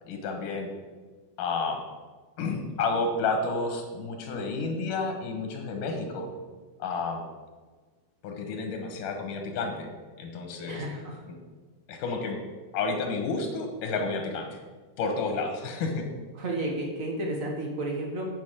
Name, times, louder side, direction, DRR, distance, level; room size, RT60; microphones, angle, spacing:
voice 1, 0.1-0.7 1.4-1.8 2.4-6.3 6.8-7.2 8.2-9.9 10.2-10.8 11.9-12.4 12.7-14.6 15.0-16.0, left 3 dB, 90° left, 4 dB, 2.9 m, -30 dB
voice 2, 10.6-11.2 16.3-18.3, right 1 dB, 65° right, 0 dB, 0.8 m, -32 dB
8.1 x 7.1 x 6.2 m, 1.4 s
omnidirectional pair, 3.7 m